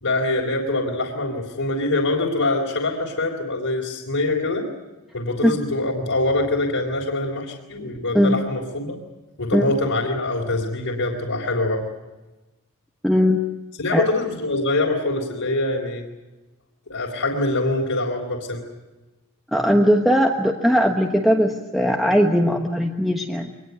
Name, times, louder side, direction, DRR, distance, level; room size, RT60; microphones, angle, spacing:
voice 1, 0.0-4.7 5.1-9.0 9.4-11.9 13.8-16.1 16.9-18.6, left 2 dB, 65° left, -2 dB, 3.6 m, -24 dB
voice 2, 13.0-13.4 13.9-14.0 19.5-23.5, equal, ahead, 1 dB, 1.2 m, -19 dB
23.5 x 20.5 x 8.1 m, 1.1 s
head